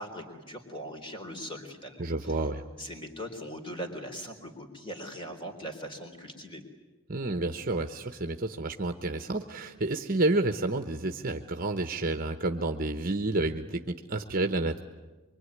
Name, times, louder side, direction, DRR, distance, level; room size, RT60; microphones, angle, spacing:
voice 1, 0.0-2.4 2.8-6.6, equal, 25° left, 4 dB, 3.8 m, -40 dB
voice 2, 2.0-2.6 7.1-14.8, right 2 dB, 40° right, 6 dB, 1.0 m, -30 dB
24.5 x 24.5 x 9.7 m, 1.2 s
head